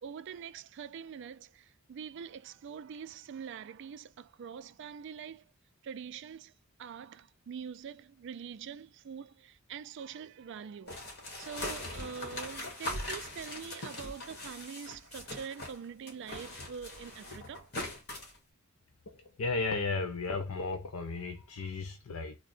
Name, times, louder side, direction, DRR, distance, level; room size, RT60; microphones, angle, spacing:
voice 1, 0.0-5.5 5.8-6.5 6.8-11.0 11.4-17.7, right 7 dB, 55° right, 0.3 m, -44 dB
sound 1, 10.9-15.8 16.1-18.4, left 1 dB, 50° left, 1.4 m, -41 dB
voice 2, 19.1-22.4, left 3 dB, 70° left, 0.5 m, -34 dB
3.6 x 2.1 x 4.2 m
head